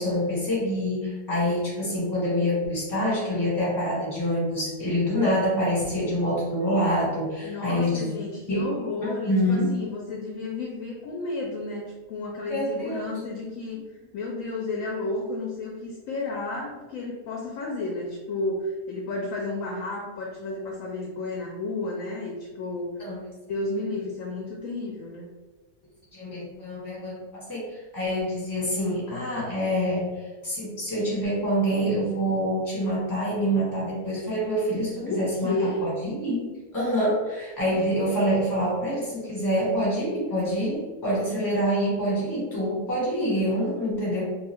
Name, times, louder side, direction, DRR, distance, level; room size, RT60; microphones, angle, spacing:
voice 1, 0.0-8.2 8.5-8.7 9.0-9.7 12.5-13.0 23.0-23.2 26.1-44.2, equal, 15° left, -6 dB, 1.1 m, -26 dB
voice 2, 7.4-13.8 14.1-23.1 23.5-25.3 35.0-35.8, left 2 dB, 70° left, -1 dB, 0.8 m, -32 dB
2.6 x 2.3 x 3.5 m, 1.3 s
omnidirectional pair, 1.7 m